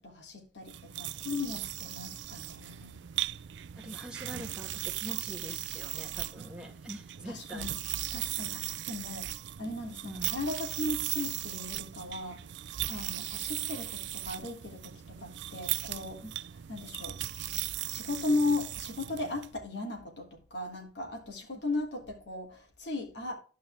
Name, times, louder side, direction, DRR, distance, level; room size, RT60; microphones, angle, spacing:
voice 1, 0.0-3.0 7.2-7.8 8.1-12.5 12.9-16.2 16.7-17.2 17.9-23.3, left 3 dB, 85° left, 3.3 m, -36 dB
sound 1, 0.6-19.5, right 14 dB, 90° right, 0.4 m, -38 dB
voice 2, 3.7-7.8 10.1-10.3 13.2-13.3 16.2-16.3, right 1 dB, 5° right, 1.5 m, -44 dB
12.5 x 5.5 x 3.6 m
head